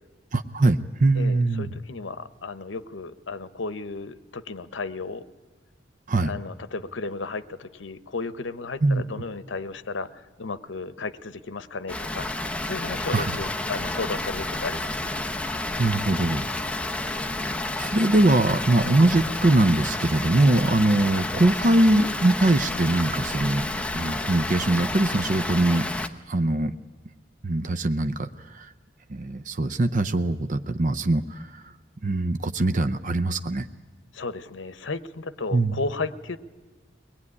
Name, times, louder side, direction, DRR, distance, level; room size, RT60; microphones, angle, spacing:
voice 1, 0.3-1.7 6.1-6.3 8.8-9.0 13.1-13.3 15.8-16.4 17.4-25.9 26.3-26.7 27.4-28.7 29.1-31.6 32.0-33.7 35.5-35.7, right 2 dB, 45° right, 10 dB, 0.6 m, -22 dB
voice 2, 1.1-5.2 6.2-12.3 12.6-15.1 34.1-36.4, left 3 dB, 85° left, 13 dB, 0.9 m, -34 dB
Water, 11.9-26.1, left 2 dB, 5° left, 0.8 m, -30 dB
22.5 x 20.0 x 9.7 m, 1.4 s
head